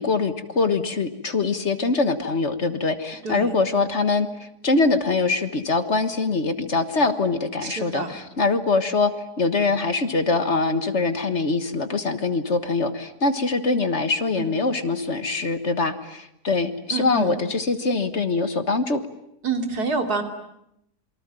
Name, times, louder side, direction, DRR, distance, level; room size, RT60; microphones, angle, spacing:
voice 1, 0.0-19.0, left 3 dB, 45° left, 11 dB, 1.7 m, -23 dB
voice 2, 7.6-8.2 14.4-14.5 16.9-17.3 19.4-20.2, right 4 dB, 75° right, 6 dB, 3.4 m, -27 dB
28.0 x 23.5 x 9.1 m, 0.78 s
omnidirectional pair, 1.7 m